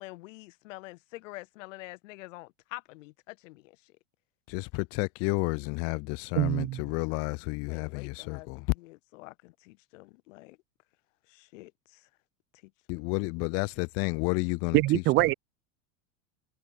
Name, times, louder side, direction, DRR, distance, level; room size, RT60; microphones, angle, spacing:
voice 1, 0.0-3.9 7.7-10.6 11.3-12.1, left 21 dB, 75° left, 4.5 m, -47 dB
voice 2, 4.5-8.7 12.9-15.3, left 30 dB, 40° left, 0.6 m, -31 dB
voice 3, 6.4-6.8 14.7-15.3, right 19 dB, 30° right, 0.6 m, -23 dB
supercardioid pair, 165°, 38 cm